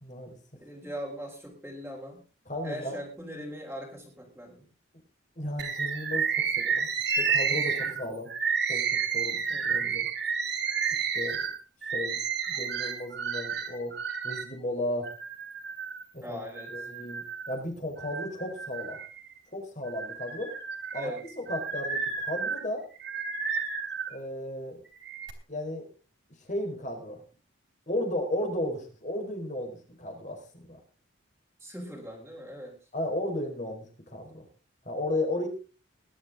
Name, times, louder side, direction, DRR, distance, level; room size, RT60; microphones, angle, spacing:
voice 1, 0.0-0.4 2.5-3.0 5.4-6.9 7.2-8.3 8.7-10.1 11.1-11.4 11.9-12.2 12.5-14.0 14.2-15.1 16.1-16.4 16.7-19.0 19.5-20.5 20.9-22.9 24.1-24.8 25.5-25.9 26.4-27.2 27.9-30.8 32.9-34.4 34.8-35.5, left 1 dB, 35° left, 3 dB, 4.8 m, -34 dB
voice 2, 0.5-2.2 2.6-4.7 7.8-8.1 9.5-9.9 16.2-16.9 20.9-21.2 31.6-32.8, equal, 5° right, -4 dB, 3.6 m, -40 dB
Bird, 5.6-14.5 15.0-16.0 16.6-17.6 18.0-19.4 19.9-24.1 24.8-25.3, right 6 dB, 55° right, 3.7 m, -31 dB
20.0 x 11.5 x 3.7 m, 0.35 s
head